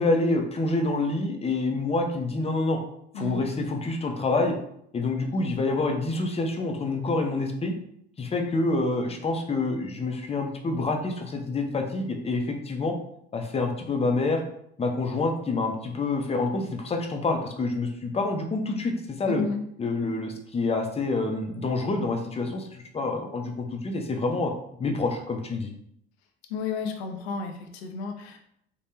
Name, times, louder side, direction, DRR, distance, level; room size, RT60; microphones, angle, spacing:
voice 1, 0.0-2.8 3.2-4.6 4.9-7.7 8.2-13.0 13.3-14.4 14.8-19.4 19.8-24.5 24.8-25.7, left 3 dB, 20° left, 3 dB, 0.6 m, -27 dB
voice 2, 3.1-3.5 19.2-19.6 26.5-28.4, left 5 dB, 80° left, 4 dB, 0.5 m, -32 dB
3.3 x 2.1 x 2.8 m, 0.70 s
hypercardioid pair, 65°, 32 cm